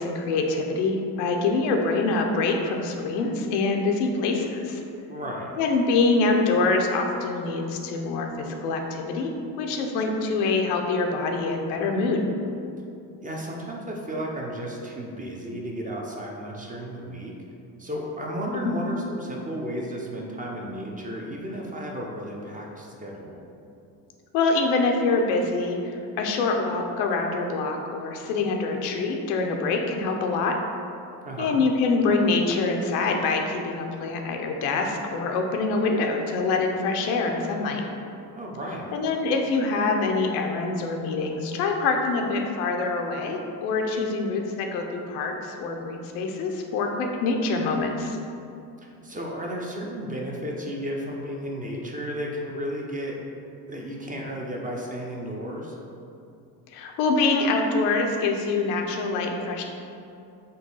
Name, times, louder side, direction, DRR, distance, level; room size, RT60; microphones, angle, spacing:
voice 1, 0.0-4.8 5.6-12.3 18.6-18.7 24.3-30.6 31.4-37.8 38.9-48.2 56.7-59.6, left 3 dB, 85° left, 2 dB, 0.6 m, -25 dB
voice 2, 5.1-5.5 13.2-17.3 17.8-23.4 31.3-31.6 38.3-38.9 48.8-53.2 53.7-55.8, equal, 20° right, -2 dB, 0.5 m, -33 dB
3.8 x 2.2 x 3.9 m, 2.7 s
supercardioid pair, 75°, 45 cm